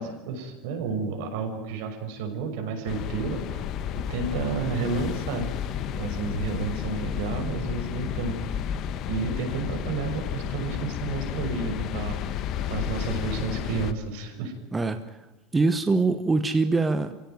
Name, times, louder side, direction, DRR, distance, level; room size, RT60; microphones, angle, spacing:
voice 1, 0.0-3.6 3.9-5.5 6.0-8.4 9.1-12.2 12.7-14.5, right 4 dB, 65° right, 5 dB, 6.3 m, -31 dB
sound 1, 2.9-13.9, left 9 dB, 35° left, 1.1 m, -31 dB
voice 2, 14.7-15.2 15.5-17.1, right 3 dB, 10° right, 9 dB, 1.0 m, -23 dB
28.0 x 17.0 x 9.3 m, 1.1 s
cardioid pair, 175°, 0 cm